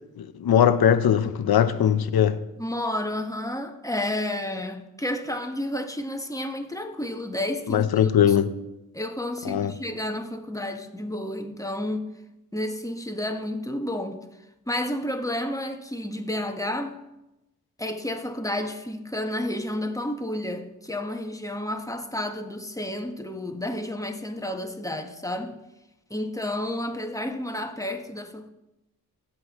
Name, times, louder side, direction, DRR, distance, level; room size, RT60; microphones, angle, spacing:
voice 1, 0.2-2.4 7.7-8.5 9.4-9.7, left 9 dB, 75° left, 0.9 m, -20 dB
voice 2, 2.6-8.4 8.9-12.1 12.5-14.2 14.7-17.0 17.8-25.6 26.1-28.5, left 1 dB, 10° left, 1.4 m, -31 dB
17.5 x 7.8 x 3.2 m
cardioid pair, 50°, 37 cm